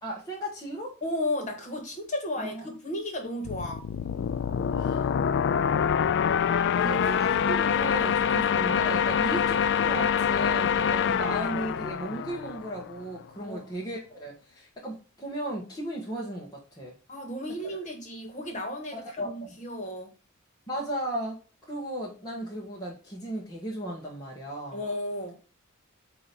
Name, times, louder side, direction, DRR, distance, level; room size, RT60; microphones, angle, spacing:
voice 1, 0.0-0.9 2.4-2.7 4.8-5.1 6.8-16.9 18.9-19.5 20.7-21.4 21.7-24.8, right 1 dB, 20° left, -3 dB, 1.3 m, -35 dB
voice 2, 1.0-3.8 6.8-7.0 13.5-13.6 17.1-20.1 24.7-25.4, left 1 dB, 35° left, 3 dB, 1.7 m, -34 dB
sound 1, 3.5-13.0, left 7 dB, 55° left, 0.3 m, -25 dB
8.6 x 3.0 x 5.1 m, 0.35 s
head